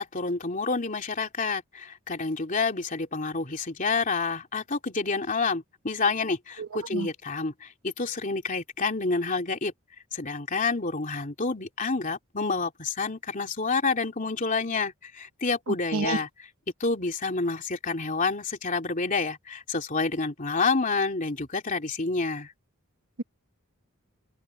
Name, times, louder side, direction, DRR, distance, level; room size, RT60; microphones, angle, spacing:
voice 1, 0.0-9.7 10.1-16.3 16.8-22.5, left 4 dB, 40° left, 3.0 m, -28 dB
voice 2, 6.6-7.1 15.7-16.2, right 4 dB, 80° right, 1.1 m, -30 dB
open air
head